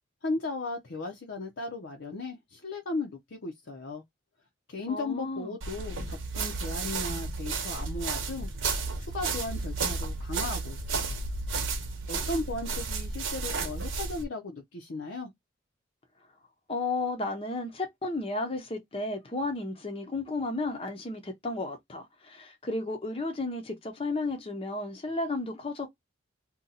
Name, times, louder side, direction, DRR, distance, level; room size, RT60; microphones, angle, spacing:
voice 1, 0.2-4.0 4.7-11.2 12.1-15.3, left 2 dB, 65° left, 0.6 m, -36 dB
voice 2, 4.9-5.5 16.7-26.0, left 2 dB, 30° left, 0.6 m, -33 dB
sound 1, 5.6-14.2, right 4 dB, 80° right, 0.9 m, -32 dB
2.7 x 2.2 x 3.9 m
head